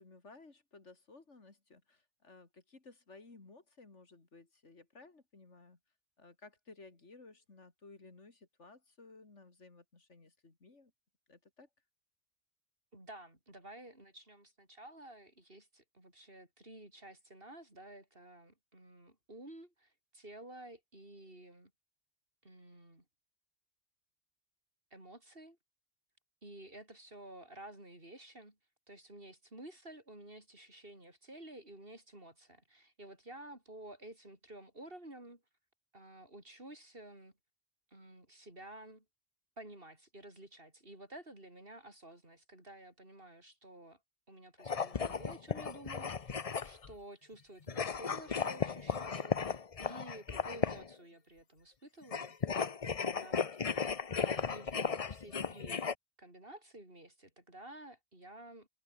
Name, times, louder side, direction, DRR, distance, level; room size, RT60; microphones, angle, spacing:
voice 1, 0.0-5.8 6.2-10.9 11.3-11.7, left 3 dB, 85° left, 3.4 m, -57 dB
voice 2, 12.9-21.7 22.4-23.0 24.9-25.6 26.4-28.6 28.9-35.4 35.9-37.3 37.9-39.0 39.6-44.0 44.3-52.3 52.9-53.6 54.2-55.8 56.2-58.7, right 1 dB, 50° right, 6.6 m, -52 dB
sound 1, 44.6-46.9 47.7-50.9 52.0-55.9, left 5 dB, 35° left, 0.8 m, -35 dB
omnidirectional pair, 1.2 m